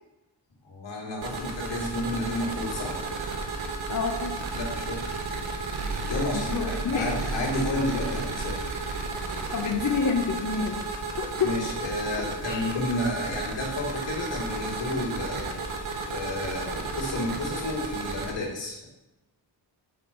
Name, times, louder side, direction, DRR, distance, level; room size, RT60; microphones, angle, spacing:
voice 1, 0.6-2.9 4.5-5.2 6.1-8.6 11.4-15.5 16.1-18.9, left 1 dB, 65° left, -3 dB, 2.7 m, -31 dB
Write To Hard drive, 1.2-18.3, right 3 dB, 80° right, 1.2 m, -33 dB
voice 2, 3.9-4.4 6.3-7.1 9.5-10.8 11.2-11.6 12.2-12.7, left 5 dB, 45° left, 1 dB, 0.7 m, -28 dB
7.8 x 4.7 x 5.3 m, 0.97 s
wide cardioid pair, 170°, 46 cm